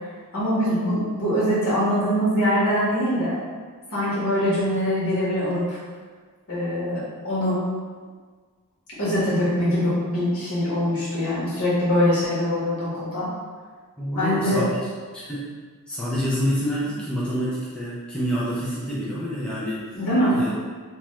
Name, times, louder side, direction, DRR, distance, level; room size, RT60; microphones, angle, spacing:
voice 1, 0.3-3.4 3.9-5.8 6.5-7.6 9.0-13.3 14.1-14.7 19.9-20.4, equal, 75° left, -9 dB, 1.4 m, -23 dB
voice 2, 14.0-14.6 15.1-15.5 15.9-19.8 20.3-20.5, equal, 5° left, -9 dB, 0.4 m, -27 dB
3.0 x 2.3 x 3.0 m, 1.5 s
head